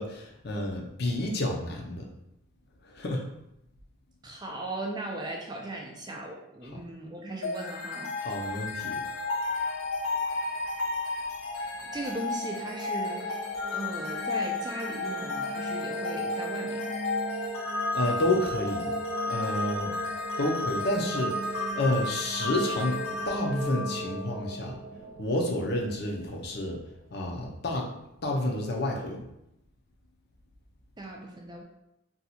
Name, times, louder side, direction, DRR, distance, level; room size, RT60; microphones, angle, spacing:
voice 1, 0.0-2.1 2.8-3.2 8.2-9.0 17.9-18.9 19.3-19.9 20.4-23.0 23.2-24.8 25.2-26.8 27.1-27.9 28.2-29.2, left 1 dB, 50° left, 0 dB, 0.5 m, -30 dB
voice 2, 4.2-8.1 11.9-13.4 13.7-17.0 31.0-31.6, right 1 dB, 20° right, 0 dB, 0.4 m, -38 dB
sound 1, 7.4-24.6, left 3 dB, 85° left, 0.8 m, -33 dB
sound 2, 11.7-26.7, right 1 dB, 85° right, 0.6 m, -38 dB
2.7 x 2.3 x 4.1 m, 0.82 s
head